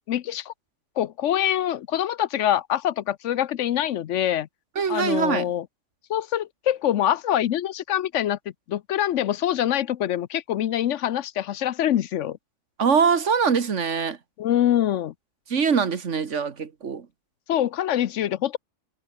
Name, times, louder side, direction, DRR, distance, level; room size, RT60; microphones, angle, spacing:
voice 1, 0.1-0.5 1.0-4.5 4.9-5.7 6.1-8.4 8.7-12.4 14.4-15.1 17.5-18.6, left 11 dB, 75° left, 1.0 m, -24 dB
voice 2, 4.8-5.5 12.8-14.2 15.5-17.1, right 6 dB, 70° right, 1.8 m, -23 dB
omnidirectional pair, 1.3 m